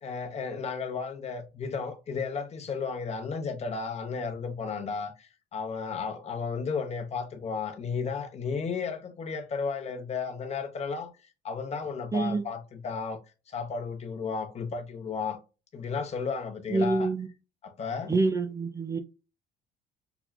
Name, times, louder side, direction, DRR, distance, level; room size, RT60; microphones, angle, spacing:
voice 1, 0.0-11.1 11.4-13.2 13.5-15.4 15.7-17.1 17.6-18.1, left 5 dB, 40° left, 0.8 m, -33 dB
voice 2, 12.1-12.5 16.7-17.3 18.1-19.0, right 3 dB, 20° right, 0.5 m, -26 dB
5.9 x 2.3 x 2.2 m
cardioid pair, 110°, 17 cm